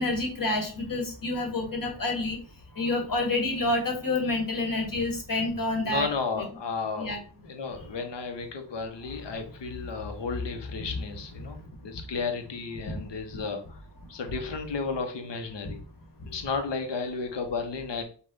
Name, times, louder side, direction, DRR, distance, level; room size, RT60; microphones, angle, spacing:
voice 1, 0.0-2.4 2.8-6.1 6.4-6.5 7.0-7.2 10.8-10.9, left 2 dB, 50° left, 2 dB, 1.7 m, -28 dB
voice 2, 5.8-7.1 7.4-13.8 14.1-15.8 16.2-18.0, left 4 dB, 75° left, 6 dB, 1.0 m, -33 dB
5.4 x 2.5 x 3.8 m, 0.40 s
cardioid pair, 55°, 43 cm